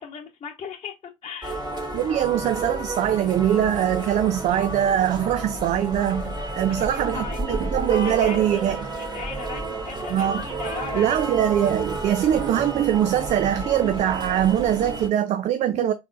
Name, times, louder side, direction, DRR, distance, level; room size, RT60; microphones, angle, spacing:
voice 1, 0.0-1.8 6.7-7.6 8.0-11.4, left 6 dB, 35° left, 1.0 m, -38 dB
sound 1, 1.4-15.1, right 2 dB, 25° right, 2.1 m, -31 dB
voice 2, 1.9-8.8 10.1-10.5 10.9-15.9, right 10 dB, 45° right, 0.5 m, -22 dB
4.3 x 4.2 x 2.4 m
hypercardioid pair, 70°, 17 cm